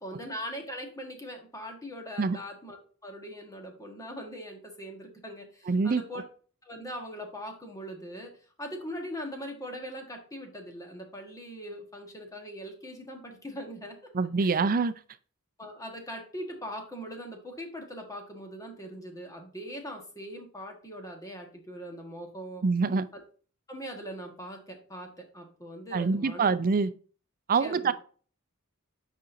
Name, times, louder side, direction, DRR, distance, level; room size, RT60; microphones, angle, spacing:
voice 1, 0.0-6.2 6.6-8.3 8.6-14.0 14.4-14.7 15.6-22.6 23.7-26.5 27.6-27.9, equal, 15° left, 1.4 m, -41 dB
voice 2, 5.7-6.0 14.1-14.9 22.6-23.1 25.9-26.9 27.5-27.9, right 4 dB, 40° right, 0.5 m, -25 dB
8.4 x 5.1 x 2.7 m
head